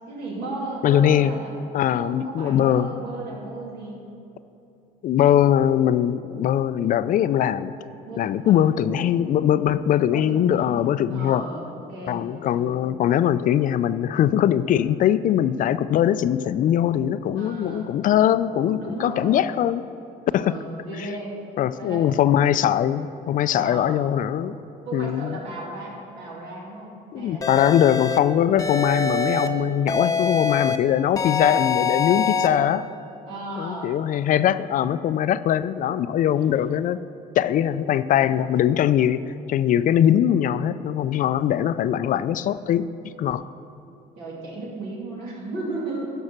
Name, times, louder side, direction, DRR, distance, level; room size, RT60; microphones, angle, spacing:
voice 1, 0.1-1.5 1.8-4.0 8.0-8.6 8.8-9.3 10.1-12.8 17.3-17.9 18.8-19.5 20.3-21.4 21.8-22.1 23.5-24.0 24.8-27.6 33.3-33.9 36.4-36.8 38.2-38.4 39.7-39.9 44.2-46.1, right 2 dB, 80° right, -3 dB, 2.7 m, -35 dB
voice 2, 0.8-1.4 1.7-2.9 5.0-7.8 8.2-11.5 12.1-19.9 20.3-20.6 21.6-24.6 24.9-25.4 27.1-32.9 33.6-37.0 37.4-43.4, left 10 dB, 55° left, 14 dB, 0.4 m, -21 dB
sound 1, 27.4-28.2 28.6-29.5 29.9-30.8 31.2-32.5, left 5 dB, 20° left, 0.7 m, -24 dB
12.5 x 5.4 x 6.0 m, 2.8 s
cardioid pair, 110°, 17 cm